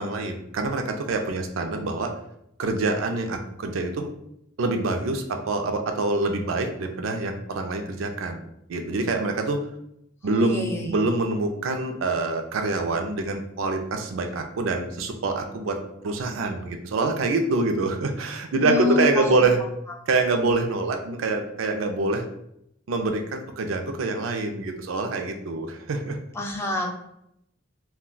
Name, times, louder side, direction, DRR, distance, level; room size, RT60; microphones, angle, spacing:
voice 1, 0.0-2.1 2.6-4.1 4.6-8.4 8.7-9.6 10.2-19.6 20.1-22.2 22.9-26.2, right 3 dB, 85° right, 5 dB, 0.4 m, -25 dB
voice 2, 10.2-10.9 18.6-19.4 26.3-26.9, left 3 dB, 15° left, 1 dB, 0.3 m, -27 dB
2.3 x 2.2 x 3.7 m, 0.78 s
head